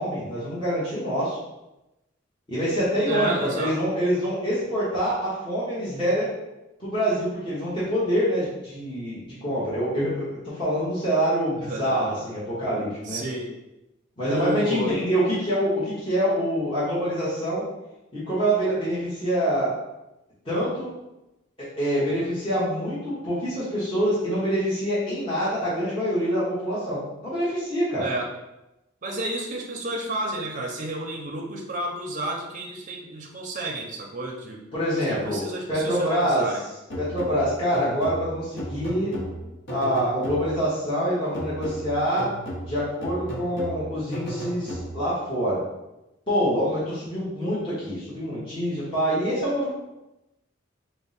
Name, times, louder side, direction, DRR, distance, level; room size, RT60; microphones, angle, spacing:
voice 1, 0.0-1.4 2.5-6.3 6.8-13.2 14.2-17.6 18.1-19.7 20.4-20.9 21.6-28.1 34.7-35.4 35.7-36.5 37.0-39.1 39.7-42.3 42.6-45.6 46.3-49.7, equal, 25° left, -11 dB, 1.1 m, -25 dB
voice 2, 3.1-3.8 11.6-12.2 13.0-13.5 14.3-15.0 28.0-28.3 29.0-34.6 34.9-36.6, right 1 dB, 40° right, 0 dB, 0.6 m, -31 dB
sound 1, 36.9-40.8 41.3-45.2, equal, 60° left, 0.8 m, -35 dB
4.3 x 2.1 x 4.0 m, 0.96 s
head